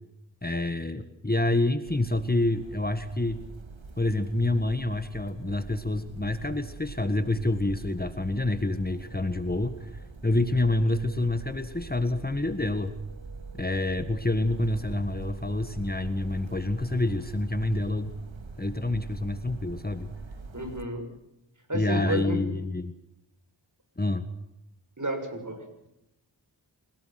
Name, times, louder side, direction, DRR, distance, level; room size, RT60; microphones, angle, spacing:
voice 1, 0.4-3.4 4.0-12.9 13.6-18.1 18.6-20.1 21.7-22.9 24.0-24.2, left 2 dB, 20° left, 9 dB, 1.7 m, -27 dB
sound 1, 1.9-20.8, right 4 dB, 85° right, 1.9 m, -44 dB
voice 2, 20.5-21.1 21.7-22.5 25.0-25.9, right 1 dB, 40° right, 6 dB, 6.9 m, -32 dB
28.0 x 18.0 x 6.0 m, 0.88 s
cardioid pair, 45°, 46 cm